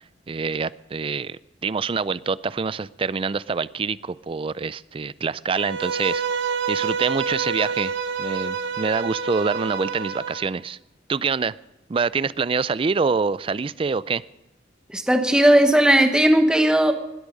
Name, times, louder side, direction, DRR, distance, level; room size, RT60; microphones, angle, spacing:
voice 1, 0.0-6.2 6.7-7.9 8.2-10.8 11.1-11.5 11.9-14.2, right 5 dB, 30° right, 18 dB, 0.4 m, -26 dB
Bowed string instrument, 5.5-10.5, right 6 dB, 75° right, 1.1 m, -28 dB
voice 2, 14.9-16.9, right 1 dB, 5° right, 6 dB, 1.0 m, -17 dB
20.0 x 8.4 x 5.2 m, 0.98 s
head